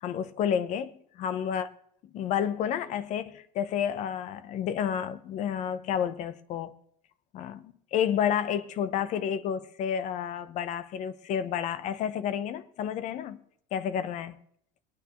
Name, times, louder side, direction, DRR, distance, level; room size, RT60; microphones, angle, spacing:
voice 1, 0.0-1.7 2.1-6.7 7.3-13.4 13.7-14.4, left 9 dB, 35° left, 0.7 m, -30 dB
22.5 x 9.1 x 3.1 m
cardioid pair, 160°, 20 cm